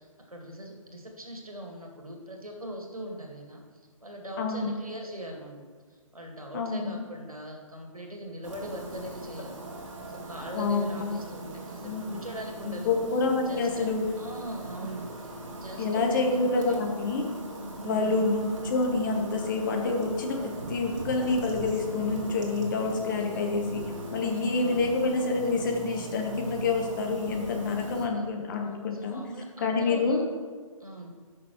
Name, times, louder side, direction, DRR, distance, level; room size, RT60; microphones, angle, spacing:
voice 1, 0.0-3.6 4.0-5.6 5.9-9.6 10.1-13.0 13.5-13.9 14.2-16.2 16.6-16.9 17.7-18.3 23.1-23.4 24.2-24.9 27.8-28.1 28.9-30.2 30.8-31.2, right 1 dB, 90° right, 1 dB, 1.9 m, -40 dB
voice 2, 4.4-4.7 6.5-7.0 10.5-11.2 11.8-12.2 12.6-14.1 14.8-14.9 15.8-17.2 17.8-23.8 24.1-29.2 29.6-30.2, left 3 dB, 35° left, 2 dB, 1.2 m, -27 dB
sound 1, 8.4-28.1, right 2 dB, 60° right, 1.8 m, -40 dB
13.5 x 6.1 x 3.1 m, 1.6 s
figure-of-eight pair, 135°, 18 cm